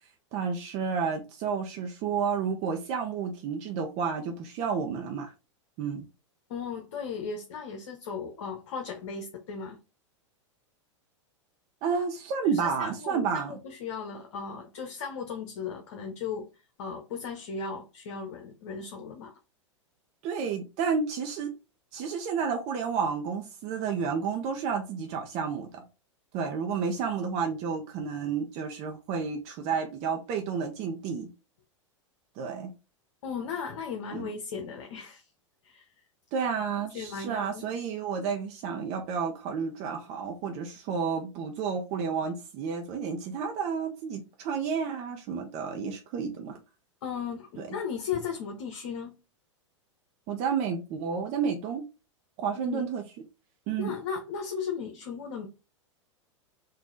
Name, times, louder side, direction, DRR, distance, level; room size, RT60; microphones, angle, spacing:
voice 1, 0.3-5.3 5.8-6.0 11.8-13.6 20.2-21.5 21.9-25.8 26.3-31.3 32.4-32.7 34.1-34.3 36.3-46.6 47.6-47.7 50.3-51.8 52.4-53.0 53.7-53.9, right 6 dB, 45° right, 0.9 m, -31 dB
voice 2, 6.5-9.8 12.4-16.5 16.8-19.3 33.2-35.3 35.6-35.9 36.8-37.7 47.0-49.1 52.5-52.9 53.8-55.5, left 6 dB, 60° left, 0.9 m, -36 dB
4.0 x 2.7 x 3.8 m
hypercardioid pair, 100°, 16 cm